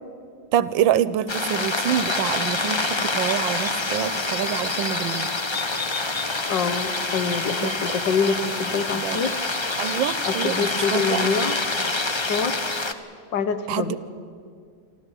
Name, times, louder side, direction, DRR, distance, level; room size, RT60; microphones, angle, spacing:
voice 1, 0.5-5.3 7.6-7.8 9.0-9.2 9.8-11.3 13.7-14.0, right 10 dB, 85° right, 16 dB, 1.5 m, -26 dB
sound 1, 1.3-12.9, left 3 dB, 35° left, 0.4 m, -26 dB
voice 2, 6.5-9.4 10.2-11.6 12.2-12.6 13.3-14.0, left 5 dB, 70° left, 11 dB, 1.9 m, -25 dB
27.5 x 12.5 x 9.9 m, 2.2 s
omnidirectional pair, 2.0 m